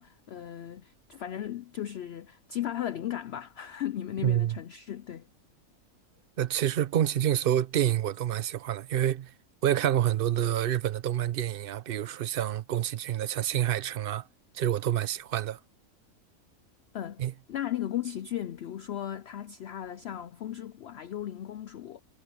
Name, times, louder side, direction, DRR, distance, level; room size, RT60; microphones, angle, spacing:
voice 1, 0.0-5.3 16.9-22.0, left 11 dB, 75° left, 0.5 m, -36 dB
voice 2, 4.2-4.6 6.4-9.3 9.6-14.2 14.5-15.6 17.2-17.3, right 11 dB, 55° right, 0.6 m, -27 dB
omnidirectional pair, 1.6 m